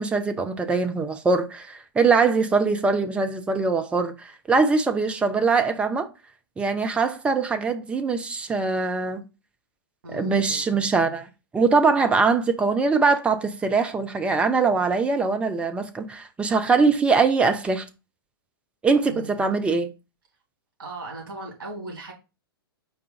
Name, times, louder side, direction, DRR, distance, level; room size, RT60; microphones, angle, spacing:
voice 1, 0.0-6.1 6.6-9.2 10.1-11.3 11.5-17.9 18.8-19.9, right 4 dB, 10° right, 0.4 m, -22 dB
voice 2, 10.0-11.2 19.1-19.4 20.8-22.1, right 2 dB, 60° right, 2.0 m, -38 dB
4.7 x 2.4 x 4.5 m
figure-of-eight pair, 105°, 13 cm